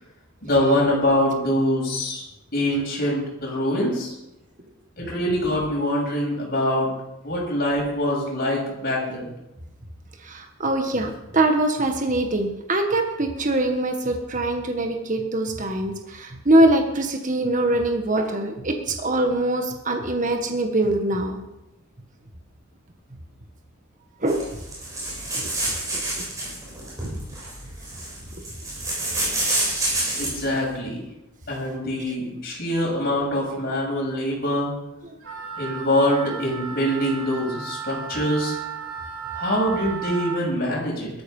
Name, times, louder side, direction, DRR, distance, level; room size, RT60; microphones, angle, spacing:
voice 1, 0.4-2.2 2.5-4.1 5.0-6.9 7.2-9.2 30.2-31.0 31.5-34.7 35.6-38.6 39.3-41.1, left 1 dB, 45° left, -3 dB, 7.3 m, -24 dB
voice 2, 10.3-21.3 24.2-24.4 25.3-25.4 25.9-26.0, right 1 dB, 35° right, 4 dB, 1.5 m, -23 dB
sound 1, 24.3-30.5, right 2 dB, 15° right, 7.4 m, -28 dB
Wind instrument woodwind instrument, 35.2-40.4, right 6 dB, 80° right, 5.1 m, -34 dB
17.0 x 14.0 x 5.5 m, 0.92 s
head